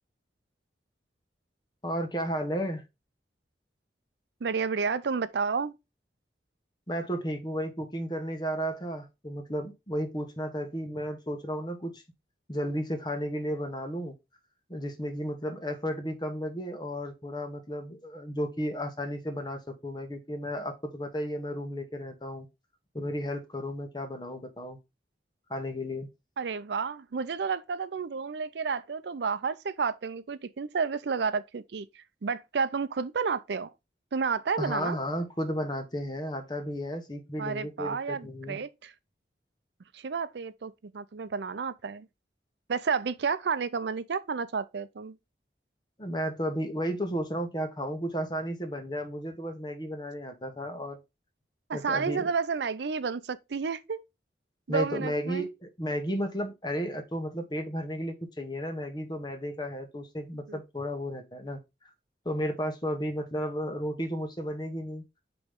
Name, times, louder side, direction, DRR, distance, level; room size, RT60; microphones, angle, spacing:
voice 1, 1.8-2.8 6.9-12.0 12.5-14.1 14.7-22.5 22.9-24.8 25.5-26.1 34.6-38.6 46.0-51.0 51.7-52.2 54.7-61.6 62.2-65.0, equal, 25° left, 1.1 m, -33 dB
voice 2, 4.4-5.7 26.4-33.7 34.1-35.0 37.4-38.9 39.9-42.1 42.7-45.2 51.7-54.0 54.7-55.5 60.5-60.6, right 5 dB, 75° right, 0.5 m, -31 dB
8.4 x 3.0 x 3.7 m
head